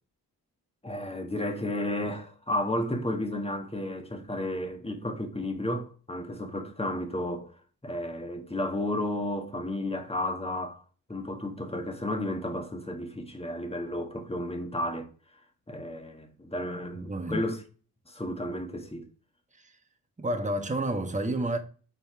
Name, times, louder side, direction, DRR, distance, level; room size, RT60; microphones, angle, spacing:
voice 1, 0.8-7.5 7.8-10.8 11.1-15.1 15.7-17.6 18.1-19.1, left 1 dB, 15° left, 1.5 m, -32 dB
voice 2, 16.9-17.4 19.6-19.7 20.2-21.6, right 1 dB, 20° right, 1.3 m, -30 dB
5.4 x 4.2 x 4.7 m
cardioid pair, 55°, 39 cm